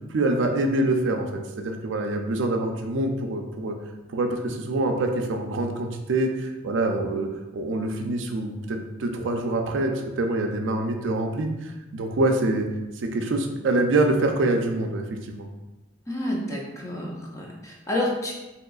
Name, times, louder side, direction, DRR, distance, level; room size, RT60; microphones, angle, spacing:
voice 1, 0.1-3.8 4.1-12.7 13.0-15.5, right 2 dB, 70° right, 4 dB, 0.4 m, -25 dB
voice 2, 16.1-18.3, left 1 dB, 15° left, -2 dB, 0.5 m, -29 dB
3.5 x 3.0 x 2.3 m, 1.0 s
head